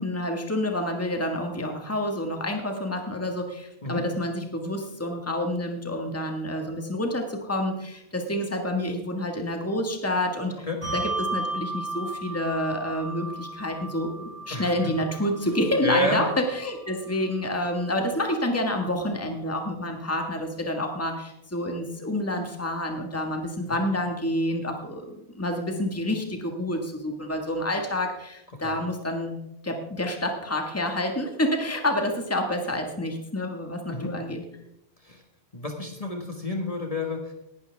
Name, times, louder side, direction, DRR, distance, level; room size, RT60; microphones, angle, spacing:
voice 1, 0.0-10.7 10.9-29.3 29.6-34.4, left 1 dB, 15° left, 3 dB, 1.7 m, -28 dB
Bell, 10.8-17.7, right 2 dB, 60° left, 5.8 m, -35 dB
voice 2, 14.5-14.9 15.8-16.3 23.7-23.8 28.6-28.7 33.9-34.1 35.0-35.2 35.5-37.3, left 2 dB, 35° left, 2 dB, 1.7 m, -29 dB
18.5 x 11.5 x 3.5 m, 0.84 s
omnidirectional pair, 1.1 m